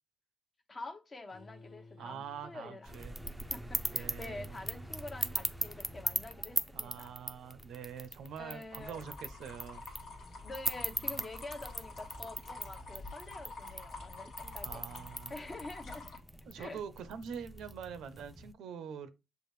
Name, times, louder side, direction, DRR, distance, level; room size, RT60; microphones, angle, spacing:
voice 1, 0.7-2.9 3.5-7.1 8.4-9.0 10.4-16.1 16.5-16.8, left 2 dB, 30° left, 0.8 m, -47 dB
sound 1, 1.3-6.2, left 3 dB, 50° left, 1.4 m, -56 dB
voice 2, 2.0-3.2 3.9-4.6 6.7-9.8 14.6-15.4 16.5-19.1, right 7 dB, 80° right, 0.5 m, -45 dB
sound 2, 2.8-18.5, right 1 dB, 5° right, 0.5 m, -41 dB
sound 3, 8.8-16.2, left 2 dB, 75° left, 1.4 m, -48 dB
6.8 x 2.4 x 3.1 m
cardioid pair, 90°, 0 cm